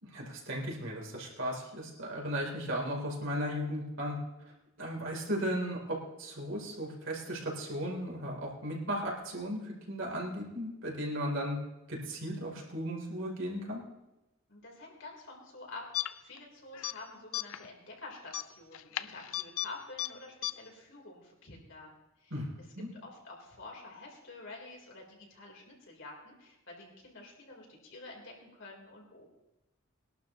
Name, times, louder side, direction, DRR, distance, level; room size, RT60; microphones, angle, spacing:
voice 1, 0.0-4.2 4.8-11.6 11.9-13.8 22.3-22.5 22.7-22.9, equal, 65° right, -1 dB, 3.6 m, -36 dB
voice 2, 14.5-22.4 23.0-29.3, left 2 dB, 60° left, -1 dB, 3.9 m, -49 dB
sound 1, 15.9-16.4 16.7-17.0 17.3-17.7 18.3-19.7 20.0-20.1 20.4-20.5, left 15 dB, 80° left, 0.5 m, -35 dB
22.0 x 12.0 x 3.1 m, 0.96 s
head